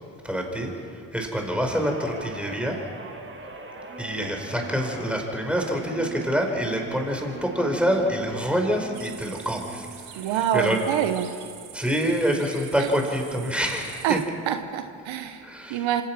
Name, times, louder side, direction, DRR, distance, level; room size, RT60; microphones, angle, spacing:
voice 1, 0.2-2.8 4.0-9.9 10.1-10.8 11.7-14.2 15.4-15.9, equal, ahead, 2 dB, 5.1 m, -26 dB
Guitar, 1.6-10.2 10.6-10.9, right 3 dB, 25° right, 2.7 m, -41 dB
sound 1, 8.9-14.2, right 10 dB, 90° right, 2.0 m, -45 dB
voice 2, 10.2-11.3 12.8-12.9 14.0-14.2 14.5-15.4 15.7-16.0, right 10 dB, 70° right, 8 dB, 1.2 m, -26 dB
26.0 x 17.5 x 6.1 m, 2.4 s
hypercardioid pair, 60°, 48 cm